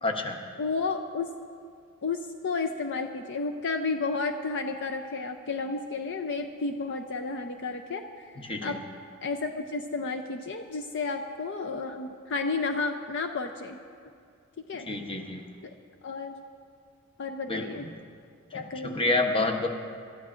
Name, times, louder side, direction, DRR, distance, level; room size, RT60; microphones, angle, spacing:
voice 1, 0.0-0.4 8.4-8.8 14.9-15.4 17.5-17.9 18.5-19.7, left 2 dB, 25° left, 3 dB, 0.9 m, -29 dB
voice 2, 0.6-1.3 2.0-8.3 8.6-8.8 9.2-13.8 14.7-14.9 15.6-15.7 16.0-16.3 17.2-17.9 18.5-19.1, left 4 dB, 55° left, 6 dB, 0.5 m, -32 dB
26.5 x 13.0 x 2.5 m, 2.3 s
head